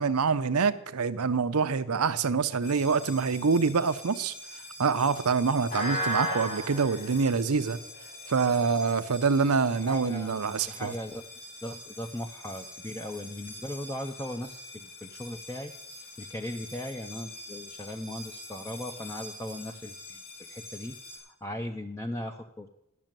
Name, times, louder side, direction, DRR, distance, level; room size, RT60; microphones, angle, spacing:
voice 1, 0.0-4.3 4.8-7.8 8.3-10.9, right 5 dB, 80° right, 0.7 m, -26 dB
sound 1, 2.6-21.2, equal, 45° left, 6.2 m, -41 dB
voice 2, 9.8-11.2 11.6-20.2 20.5-22.7, left 1 dB, 15° left, 0.6 m, -38 dB
12.0 x 6.3 x 9.0 m
head